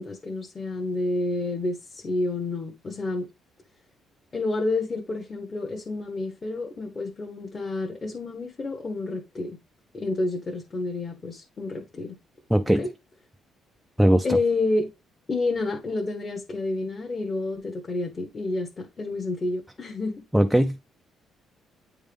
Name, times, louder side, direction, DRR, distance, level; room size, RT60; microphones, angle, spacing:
voice 1, 0.0-3.3 4.3-9.6 9.9-12.2 12.7-12.9 14.2-14.9 15.3-20.2, left 2 dB, 25° left, 0.9 m, -29 dB
voice 2, 12.5-12.8 14.0-14.4 20.3-21.0, right 1 dB, 5° right, 0.3 m, -20 dB
9.1 x 3.6 x 3.4 m
cardioid pair, 160°, 0 cm